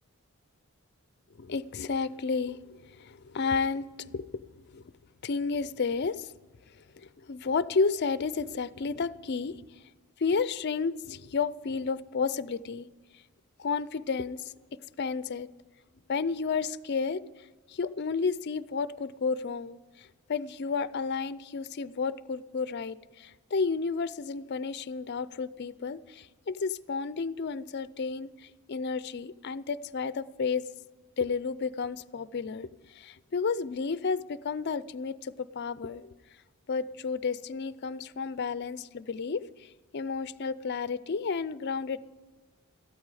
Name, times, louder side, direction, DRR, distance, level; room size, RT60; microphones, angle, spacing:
voice 1, 1.4-4.8 5.2-6.3 7.0-9.6 10.2-12.9 13.6-14.4 15.0-15.5 16.1-17.2 17.7-30.7 31.2-32.7 32.9-36.1 36.7-42.0, left 5 dB, 50° left, 0.4 m, -32 dB
13.5 x 13.0 x 4.8 m
head